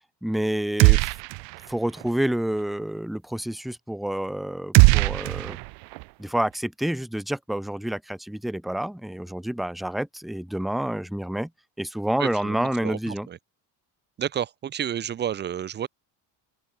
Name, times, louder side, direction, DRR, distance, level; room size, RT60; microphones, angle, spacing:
voice 1, 0.2-1.1 1.7-5.6 6.2-11.5 11.8-13.3, right 1 dB, ahead, 0.5 m, -28 dB
sound 1, 0.8-1.7 2.0-2.1 4.7-6.0, right 32 dB, 85° right, 0.5 m, -19 dB
voice 2, 12.2-13.4 14.2-15.9, right 9 dB, 25° right, 0.8 m, -31 dB
open air
cardioid pair, 165°, 42 cm